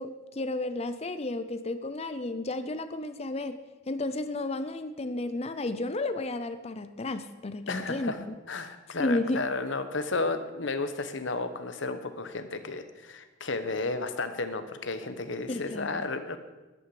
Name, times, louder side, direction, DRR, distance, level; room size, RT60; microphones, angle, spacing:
voice 1, 0.0-3.6 3.9-8.1 9.0-9.4 15.5-15.9, left 2 dB, 30° left, 10 dB, 0.5 m, -32 dB
voice 2, 7.7-16.4, left 3 dB, 65° left, 10 dB, 1.1 m, -33 dB
14.0 x 11.5 x 4.9 m, 1.2 s
head